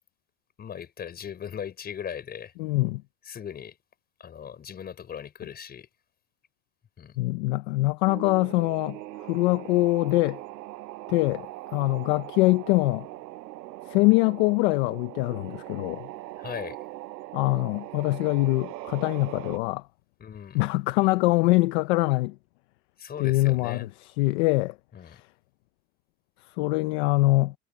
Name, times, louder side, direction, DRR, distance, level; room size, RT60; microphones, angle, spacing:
voice 1, 0.6-2.5 3.3-3.8 4.2-5.9 7.0-7.2 16.4-16.8 20.2-20.6 23.0-23.9 24.9-25.2, left 8 dB, 20° left, 5.8 m, -38 dB
voice 2, 2.6-3.0 7.2-10.4 11.1-13.1 13.9-16.1 17.3-19.8 20.5-22.4 23.2-24.8 25.1-25.2 26.6-27.5, left 21 dB, 45° left, 0.6 m, -24 dB
sound 1, 8.1-19.6, right 17 dB, 90° right, 6.5 m, -41 dB
supercardioid pair, 175°, 49 cm